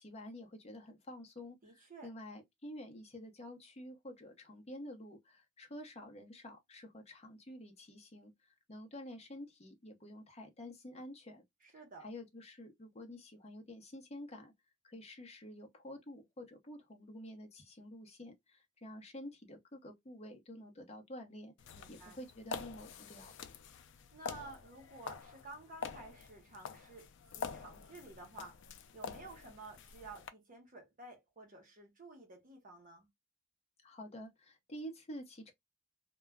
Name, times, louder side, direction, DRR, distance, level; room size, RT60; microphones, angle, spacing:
voice 1, 0.0-11.4 12.0-14.5 14.8-21.5 21.9-23.4 33.8-35.5, left 1 dB, 30° left, 0.7 m, -49 dB
voice 2, 1.6-2.1 11.6-12.1 21.7-22.2 24.1-28.6 28.9-33.1, right 2 dB, 40° right, 0.8 m, -52 dB
sound 1, 21.6-30.3, left 6 dB, 60° left, 0.4 m, -47 dB
2.2 x 2.1 x 3.4 m
head